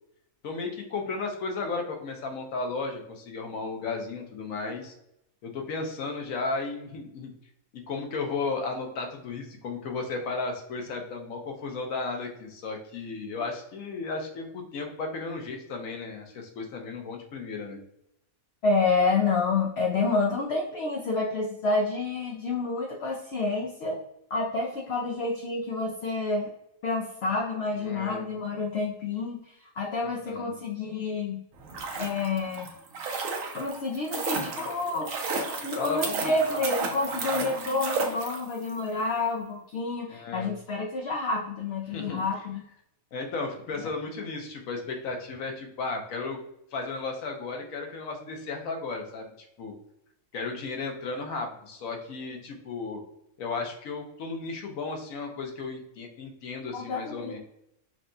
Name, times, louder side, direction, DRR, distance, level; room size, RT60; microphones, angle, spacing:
voice 1, 0.4-4.9 5.4-7.3 7.7-17.8 27.8-28.2 30.3-30.5 35.8-36.2 37.2-37.5 40.1-40.5 41.9-42.2 43.1-46.4 46.7-49.3 49.6-49.7 50.3-53.0 53.4-57.4, left 3 dB, 85° left, 3 dB, 1.2 m, -34 dB
voice 2, 18.6-24.0 24.3-26.5 26.8-31.4 32.0-32.7 33.5-35.1 35.6-42.6 56.7-57.4, left 3 dB, 60° left, -2 dB, 0.8 m, -29 dB
sound 1, 31.5-38.7 39.0-39.1, right 4 dB, 75° right, 1.1 m, -33 dB
5.7 x 2.2 x 2.6 m, 0.79 s
omnidirectional pair, 1.4 m